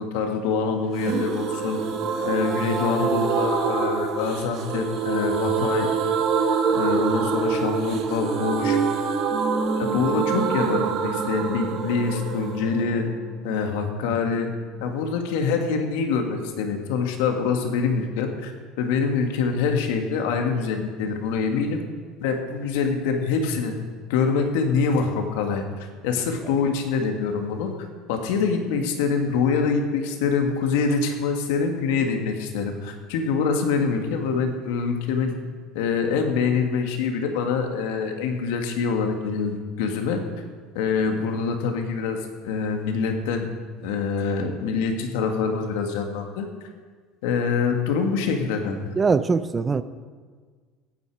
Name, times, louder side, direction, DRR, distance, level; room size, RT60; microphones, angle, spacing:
voice 1, 0.0-1.8 2.2-5.9 6.7-8.8 9.7-13.1 13.4-14.5 14.8-21.8 22.2-23.7 24.1-35.3 35.7-40.2 40.8-43.5 43.8-46.5 47.2-48.9, left 5 dB, 75° left, 4 dB, 1.9 m, -25 dB
sound 1, 1.0-14.6 14.8-14.9 15.2-15.3, right 5 dB, 40° right, 1.5 m, -26 dB
voice 2, 49.0-49.8, right 4 dB, 15° right, 13 dB, 0.5 m, -21 dB
16.5 x 9.5 x 4.9 m, 1.5 s
cardioid pair, 170°, 0 cm